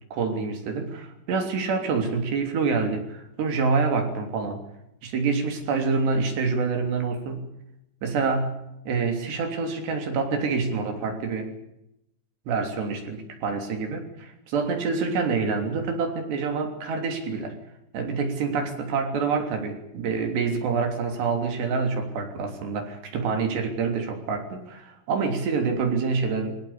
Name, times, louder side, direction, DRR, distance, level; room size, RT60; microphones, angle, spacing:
voice 1, 0.1-4.6 5.0-7.5 8.0-11.5 12.5-17.6 17.9-26.5, right 4 dB, 60° right, 4 dB, 5.2 m, -27 dB
22.5 x 18.5 x 8.6 m, 0.82 s
omnidirectional pair, 5.8 m